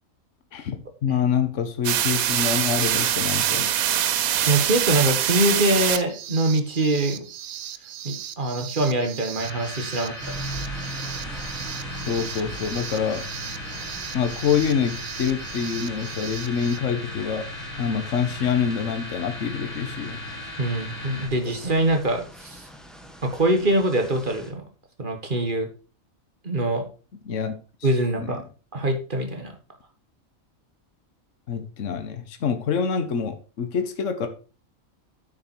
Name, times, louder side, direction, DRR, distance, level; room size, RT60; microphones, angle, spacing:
voice 1, 0.5-3.7 12.1-13.2 14.1-17.5 17.8-20.2 27.2-27.5 28.2-28.3 31.5-34.3, left 7 dB, 65° left, 8 dB, 1.4 m, -26 dB
sound 1, 1.8-16.8, right 11 dB, 90° right, 1.2 m, -28 dB
voice 2, 4.5-7.2 8.0-10.4 20.6-22.7 23.2-24.7 25.0-25.7 26.4-26.9 27.8-28.4 28.7-29.5, right 1 dB, 40° right, 5 dB, 1.7 m, -24 dB
sound 2, 9.4-21.3, left 1 dB, 20° left, 3.5 m, -37 dB
sound 3, 10.2-24.5, right 1 dB, ahead, 1.3 m, -41 dB
8.8 x 6.6 x 4.6 m, 0.35 s
omnidirectional pair, 1.4 m